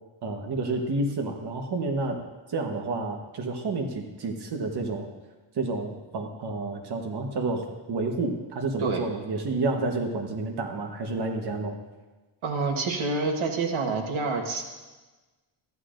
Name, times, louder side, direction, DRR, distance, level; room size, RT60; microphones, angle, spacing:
voice 1, 0.2-2.2 2.5-5.1 5.5-11.8, right 3 dB, 55° right, 3 dB, 1.2 m, -30 dB
voice 2, 12.4-14.6, right 3 dB, 80° right, 3 dB, 1.3 m, -27 dB
14.5 x 11.0 x 2.5 m, 1.2 s
cardioid pair, 105°, 48 cm